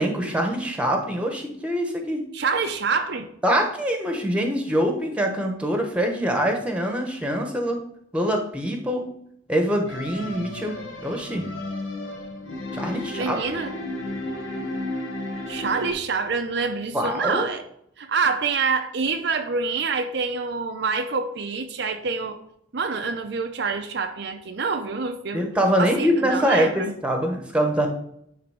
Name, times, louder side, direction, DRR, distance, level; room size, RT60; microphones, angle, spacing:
voice 1, 0.0-2.2 3.4-7.8 8.1-9.0 9.5-11.5 12.7-13.4 16.9-17.5 25.3-27.9, equal, 5° right, 1.1 m, -24 dB
voice 2, 2.3-3.3 13.2-13.8 15.5-17.7 18.0-22.4 22.7-25.5 25.8-26.9, right 4 dB, 55° right, 0.6 m, -26 dB
sound 1, 9.9-15.9, left 1 dB, 75° left, 1.6 m, -33 dB
9.8 x 3.5 x 4.9 m
head